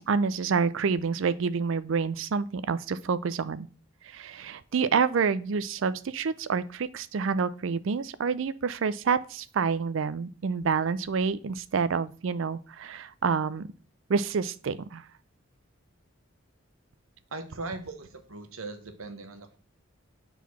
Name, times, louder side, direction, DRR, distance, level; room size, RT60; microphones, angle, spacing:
voice 1, 0.0-3.7 4.0-13.7 14.1-15.1, right 5 dB, 65° right, 0.4 m, -28 dB
voice 2, 17.3-19.6, right 3 dB, 85° right, 1.1 m, -39 dB
4.7 x 4.0 x 5.4 m
head